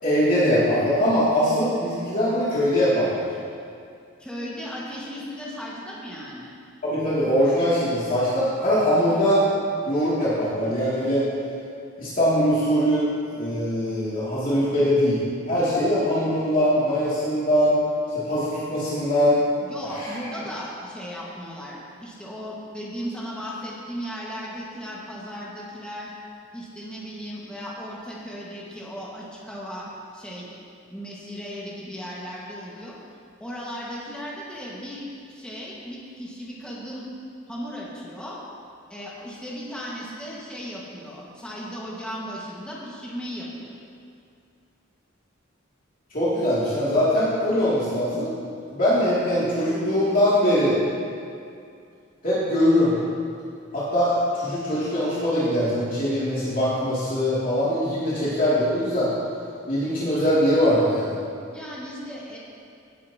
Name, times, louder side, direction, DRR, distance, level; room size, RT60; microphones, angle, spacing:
voice 1, 0.0-3.3 6.8-9.4 9.9-11.2 12.0-13.1 13.3-17.8 18.2-19.4 19.9-20.1 46.1-48.3 48.7-50.8 52.2-53.0 53.7-59.1 59.7-61.2, equal, 45° left, -10 dB, 2.6 m, -22 dB
voice 2, 4.2-6.6 19.6-26.1 26.5-29.9 30.1-30.5 30.9-32.9 33.4-37.1 37.5-38.4 38.9-43.7 61.5-62.4, equal, 5° left, -6 dB, 1.6 m, -36 dB
17.5 x 9.3 x 2.9 m, 2.4 s
head